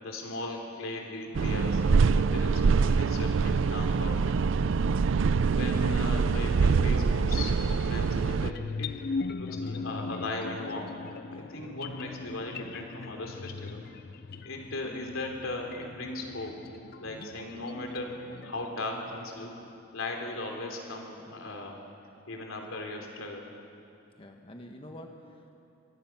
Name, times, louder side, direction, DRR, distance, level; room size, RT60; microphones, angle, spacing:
voice 1, 0.0-4.4 5.2-11.0 11.3-13.8 14.4-16.5 17.0-18.1 18.4-19.5 19.9-21.8 22.3-23.5, left 2 dB, 85° left, 2 dB, 3.2 m, -38 dB
sound 1, 1.3-8.5, right 5 dB, 70° right, 0.4 m, -25 dB
sound 2, 7.6-19.8, left 4 dB, 50° left, 0.5 m, -40 dB
voice 2, 24.2-25.5, left 1 dB, 25° left, 3 dB, 1.4 m, -47 dB
24.0 x 19.5 x 6.0 m, 2.6 s
head